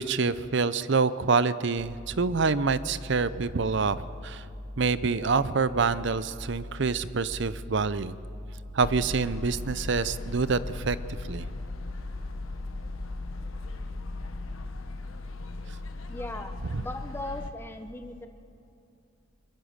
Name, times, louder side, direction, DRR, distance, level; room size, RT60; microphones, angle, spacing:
voice 1, 0.0-4.4 4.8-8.2 8.7-11.0 11.2-11.5 16.6-16.9, right 4 dB, 60° right, 15 dB, 0.6 m, -26 dB
sound 1, 1.8-14.7, left 1 dB, 75° right, 1.8 m, -43 dB
sound 2, 8.8-17.5, left 2 dB, 80° left, 1.4 m, -37 dB
voice 2, 16.1-18.3, left 1 dB, 10° left, 7 dB, 0.9 m, -38 dB
22.0 x 21.5 x 6.6 m, 2.7 s
head